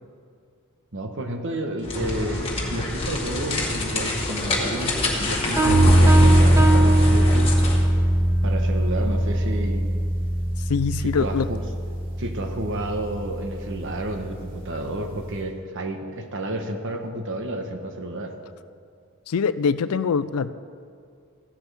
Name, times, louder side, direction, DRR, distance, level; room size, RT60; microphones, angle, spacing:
voice 1, 0.9-7.6 8.4-9.9 11.0-11.6 12.2-18.3, right 1 dB, 60° right, 5 dB, 1.1 m, -31 dB
sound 1, 1.8-7.9, left 2 dB, 25° left, 1.8 m, -27 dB
sound 2, 5.6-8.0, right 2 dB, 15° right, 0.6 m, -23 dB
sound 3, 5.6-15.4, right 1 dB, 45° right, 2.6 m, -21 dB
voice 2, 10.7-11.5 19.3-20.5, left 5 dB, 75° left, 14 dB, 0.4 m, -23 dB
15.5 x 11.5 x 3.4 m, 2.3 s
head